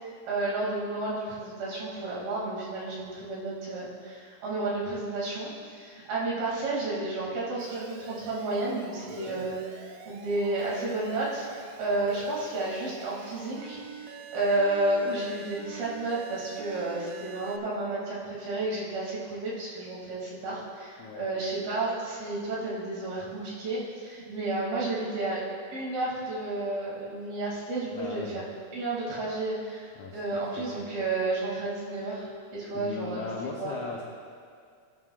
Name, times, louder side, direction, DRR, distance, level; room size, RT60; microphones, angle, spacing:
voice 1, 0.0-9.6 10.0-25.4 25.7-28.4 28.7-33.2 33.6-33.7, right 2 dB, 60° right, -6 dB, 4.2 m, -31 dB
Alarm, 7.6-17.6, right 6 dB, 90° right, 3.0 m, -46 dB
voice 2, 9.1-9.5 21.0-21.3 27.9-28.4 29.9-30.2 30.6-30.9 32.7-34.0, left 4 dB, 85° left, -2 dB, 1.7 m, -38 dB
18.5 x 11.0 x 2.4 m, 2.2 s
omnidirectional pair, 4.9 m